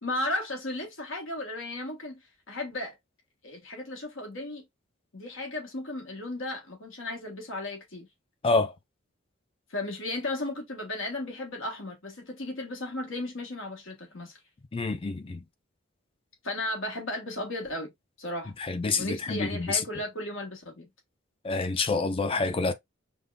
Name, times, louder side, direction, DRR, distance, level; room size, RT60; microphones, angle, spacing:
voice 1, 0.0-2.2 2.5-3.0 3.4-4.6 5.1-8.1 9.7-14.4 16.4-17.9 18.2-18.5 19.0-20.9, left 1 dB, 70° left, 1.3 m, -35 dB
voice 2, 14.7-15.4 18.6-19.8 21.4-22.7, left 3 dB, 25° left, 0.5 m, -27 dB
5.3 x 2.2 x 2.4 m
head